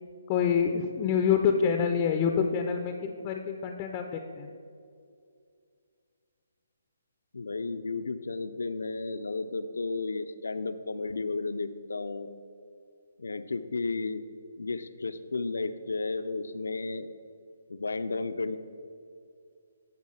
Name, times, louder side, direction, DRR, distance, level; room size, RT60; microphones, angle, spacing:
voice 1, 0.3-4.5, left 7 dB, 25° left, 5 dB, 0.4 m, -27 dB
voice 2, 7.3-12.3 13.2-14.2 14.6-17.1 17.7-18.6, left 3 dB, 90° left, 11 dB, 0.5 m, -33 dB
11.0 x 4.0 x 5.6 m, 2.3 s
hypercardioid pair, 160°, 0 cm